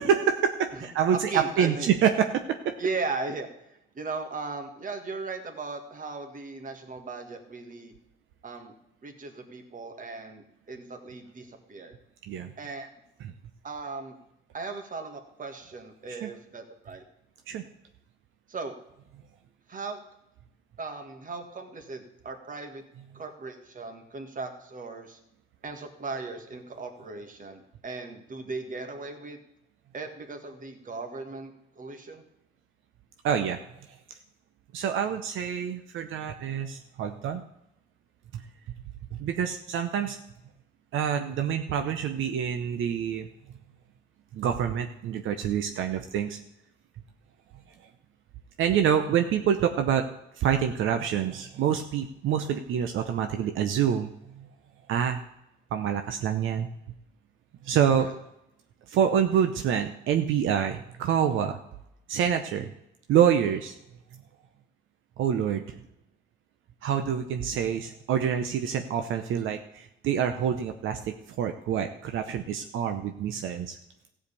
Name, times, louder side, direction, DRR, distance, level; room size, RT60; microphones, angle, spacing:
voice 1, 0.0-2.7 12.3-12.5 13.2-13.3 16.2-16.3 17.5-17.6 33.2-33.6 34.7-37.4 38.3-38.4 39.1-40.2 40.9-43.3 44.3-46.4 48.6-50.0 50.4-54.1 54.9-55.2 55.7-56.7 57.6-58.1 58.9-61.6 62.1-62.7 63.1-63.8 65.2-65.8 66.8-73.8, right 8 dB, 80° right, 7 dB, 0.8 m, -26 dB
voice 2, 1.1-2.0 2.8-7.9 8.4-8.7 9.0-12.0 12.6-12.9 13.6-14.2 14.5-17.0 18.5-18.7 19.7-20.0 20.8-22.8 23.1-25.2 25.6-29.4 29.9-32.3 57.9-58.1, right 3 dB, 40° right, 6 dB, 1.9 m, -37 dB
14.5 x 5.1 x 8.4 m, 0.83 s
cardioid pair, 90°, 20 cm